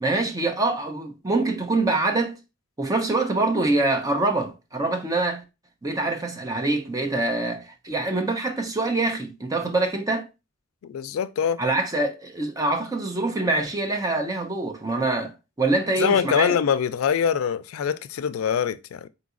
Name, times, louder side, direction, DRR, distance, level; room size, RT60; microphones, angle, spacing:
voice 1, 0.0-2.4 2.8-5.4 5.8-10.3 11.6-16.6, right 2 dB, 15° right, 0.6 m, -25 dB
voice 2, 10.8-11.6 16.0-19.1, left 7 dB, 90° left, 0.3 m, -24 dB
4.0 x 3.9 x 2.4 m
head